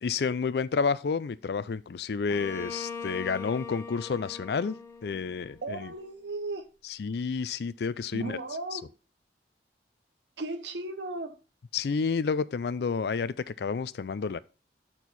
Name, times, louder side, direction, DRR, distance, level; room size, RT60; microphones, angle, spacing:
voice 1, 0.0-4.8 5.0-5.9 6.9-8.4 8.7-8.8 11.7-14.4, left 5 dB, 65° left, 0.4 m, -30 dB
Bowed string instrument, 2.3-6.0, left 5 dB, 15° left, 0.9 m, -41 dB
voice 2, 5.6-6.7 8.1-8.8 10.4-11.4, right 2 dB, 80° right, 0.9 m, -36 dB
8.2 x 4.5 x 4.0 m
head